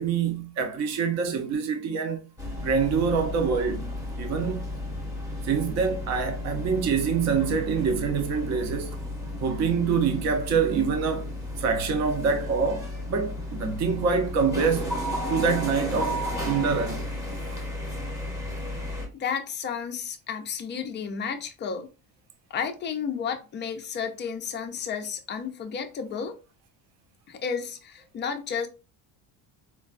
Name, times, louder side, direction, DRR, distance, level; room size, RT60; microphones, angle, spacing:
voice 1, 0.0-2.2 2.6-4.7 5.4-9.0 9.4-11.3 11.6-15.0 15.3-17.1 17.5-17.6, right 5 dB, 40° right, 0.7 m, -26 dB
sound 1, 2.4-19.1, left 1 dB, 10° right, 0.8 m, -33 dB
voice 2, 19.1-21.9 22.5-26.4 27.3-28.7, left 6 dB, 25° left, 0.4 m, -32 dB
4.5 x 2.2 x 2.4 m
cardioid pair, 155°, 42 cm